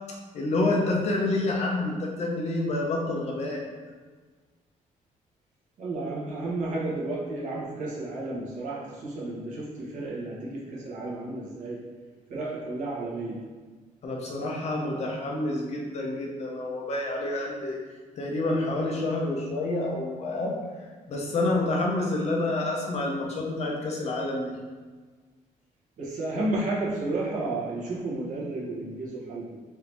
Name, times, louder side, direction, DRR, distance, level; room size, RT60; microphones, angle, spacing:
voice 1, 0.3-3.6 14.0-17.8 18.2-20.6 21.1-24.5, left 2 dB, 55° left, -1 dB, 0.8 m, -28 dB
voice 2, 5.8-11.8 12.3-13.4 26.0-29.6, right 2 dB, 65° right, -5 dB, 1.2 m, -32 dB
4.6 x 2.8 x 3.4 m, 1.4 s
cardioid pair, 150°, 14 cm